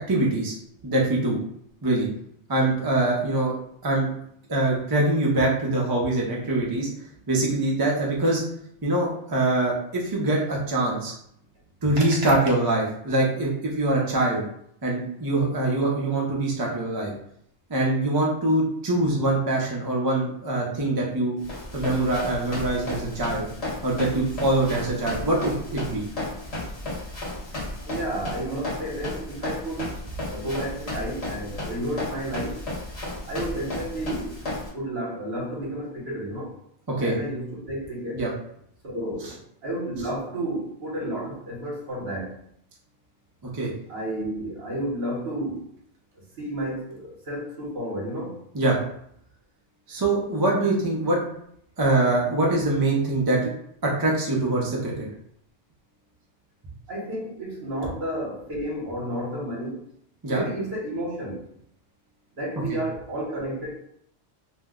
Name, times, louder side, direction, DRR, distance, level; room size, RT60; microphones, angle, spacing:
voice 1, 0.1-0.5 0.8-1.4 1.8-2.1 2.5-3.5 3.8-4.1 4.5-6.9 7.3-8.4 8.8-11.1 11.8-14.4 14.8-17.1 17.7-21.4 21.7-23.5 23.8-26.0 36.9-37.2 38.1-38.3 43.5-43.7 48.5-48.8 49.9-51.2 51.8-53.4 53.8-54.9 60.2-60.4 62.7-62.8, right 2 dB, 30° right, -3 dB, 0.4 m, -23 dB
voice 2, 12.0-12.3 27.9-29.9 30.3-32.6 33.3-34.3 34.7-36.5 37.0-38.2 38.8-39.3 39.6-42.3 43.9-45.6 46.4-48.4 56.9-59.8 60.3-61.4 62.4-63.8, right 1 dB, 60° right, -2 dB, 1.0 m, -31 dB
Run, 21.4-34.7, left 1 dB, 35° left, 0.8 m, -34 dB
2.6 x 2.0 x 3.5 m, 0.68 s
omnidirectional pair, 1.3 m